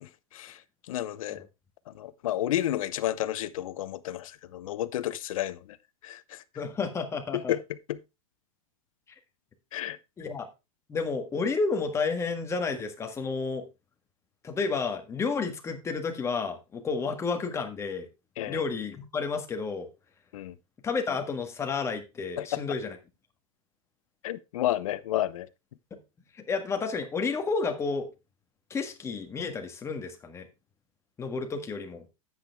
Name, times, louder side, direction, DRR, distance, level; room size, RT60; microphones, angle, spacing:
voice 1, 0.0-0.6 0.9-1.5 1.9-5.8 6.0-6.4 7.3-7.6 7.9-8.0 9.7-10.0 18.4-18.6 20.3-20.5 22.4-22.6 24.2-25.5, left 13 dB, 70° left, 0.8 m, -31 dB
voice 2, 6.5-7.5 10.2-10.5 10.9-13.6 14.4-18.1 18.5-19.9 20.8-23.0 26.4-28.1 28.7-30.5 31.2-32.0, left 4 dB, 15° left, 1.6 m, -31 dB
10.0 x 8.2 x 3.5 m
supercardioid pair, 145°, 18 cm